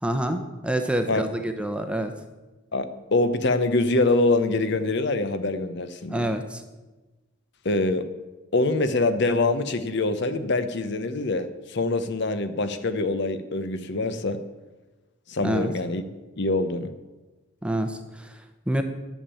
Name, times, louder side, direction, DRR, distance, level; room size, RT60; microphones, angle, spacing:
voice 1, 0.0-2.1 6.1-6.6 15.4-15.7 17.6-18.8, right 1 dB, 5° right, 6 dB, 0.8 m, -27 dB
voice 2, 2.7-6.3 7.6-8.1 8.5-14.4 15.3-16.0 16.4-16.9, left 2 dB, 55° left, 11 dB, 0.8 m, -24 dB
10.5 x 7.2 x 8.4 m, 1.2 s
head